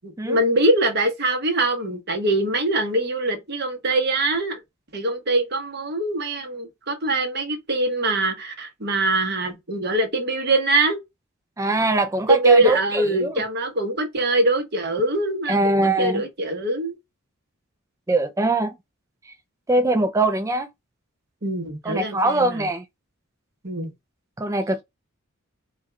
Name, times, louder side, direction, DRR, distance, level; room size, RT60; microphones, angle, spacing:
voice 1, 0.0-4.6 4.9-11.0 12.3-17.0 21.4-22.7 23.6-23.9, right 2 dB, 50° right, 1.1 m, -23 dB
voice 2, 11.6-13.4 15.5-16.2 18.1-18.7 19.7-20.7 21.8-22.8 24.4-24.8, right 2 dB, 15° right, 0.4 m, -22 dB
4.4 x 2.3 x 3.7 m
head